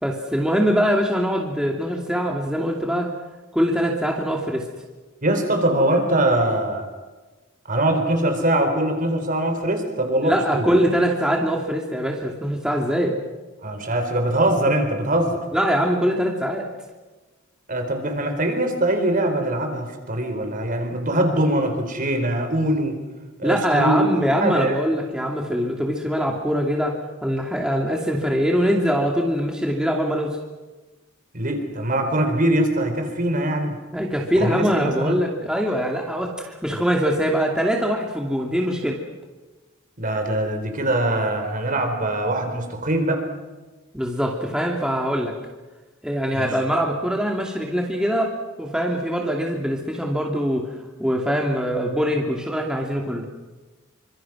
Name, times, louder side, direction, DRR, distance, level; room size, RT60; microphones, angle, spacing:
voice 1, 0.0-3.1 3.5-4.7 10.2-13.2 15.5-16.7 23.4-26.9 27.2-30.4 33.9-39.0 43.9-45.3 46.0-50.7 51.0-53.3, equal, 5° right, 0 dB, 2.6 m, -23 dB
voice 2, 5.2-6.9 7.6-10.7 13.6-15.4 17.7-23.0 23.4-24.8 31.3-33.8 34.4-35.2 40.0-43.2 46.3-46.5, right 1 dB, 40° right, 6 dB, 4.5 m, -22 dB
28.5 x 25.5 x 6.3 m, 1.2 s
head